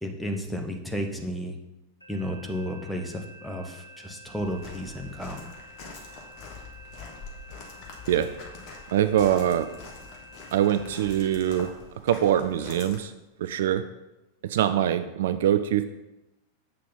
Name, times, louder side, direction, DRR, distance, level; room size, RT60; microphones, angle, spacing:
voice 1, 0.0-1.6 2.1-5.4, equal, ahead, 2 dB, 1.0 m, -33 dB
sound 1, 2.0-11.7, equal, 85° right, 1.4 m, -49 dB
Walk footsteps, 4.4-13.0, left 4 dB, 35° left, 1.6 m, -45 dB
voice 2, 8.9-9.7 10.5-11.7 12.0-13.1 13.4-13.8 14.4-15.8, right 10 dB, 60° right, 11 dB, 0.3 m, -23 dB
7.5 x 6.3 x 4.0 m, 0.98 s
figure-of-eight pair, 90°, 0 cm